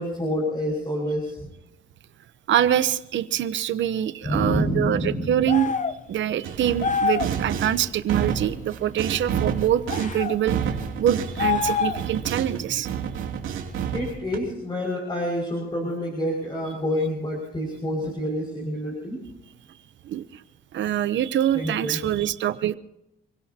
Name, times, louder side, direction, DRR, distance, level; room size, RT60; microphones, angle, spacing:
voice 1, 0.0-1.4 4.2-5.3 13.9-19.2 21.5-22.0, equal, 25° left, -1 dB, 6.0 m, -27 dB
voice 2, 2.5-5.7 6.1-13.1 20.0-20.4 20.7-22.7, right 10 dB, 70° right, 14 dB, 0.9 m, -25 dB
sound 1, 5.5-6.0 6.8-7.4 9.9-10.4 11.4-12.1, left 6 dB, 40° left, 0.9 m, -25 dB
sound 2, 6.4-12.6 12.8-14.4, right 8 dB, 85° right, 2.9 m, -29 dB
29.0 x 16.5 x 2.9 m, 0.88 s
cardioid pair, 90°, 20 cm